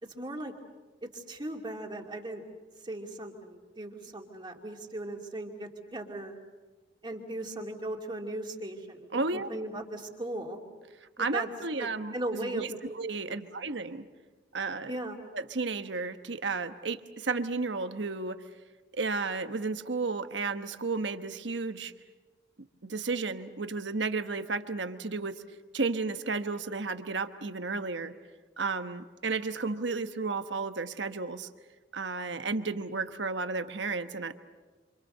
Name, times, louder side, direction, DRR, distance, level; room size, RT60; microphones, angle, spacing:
voice 1, 0.0-0.5 1.0-2.4 2.8-6.4 7.0-10.6 11.2-11.5 11.8-13.0 13.3-13.4 14.9-15.2, right 1 dB, 25° right, 2 dB, 2.6 m, -38 dB
voice 2, 9.1-9.5 11.2-12.7 12.9-14.0 14.5-14.9 15.3-18.4 18.9-21.9 22.9-25.3 25.7-28.1 28.6-31.5 31.9-34.3, right 4 dB, 75° right, 9 dB, 1.2 m, -33 dB
27.5 x 27.0 x 6.7 m, 1.3 s
head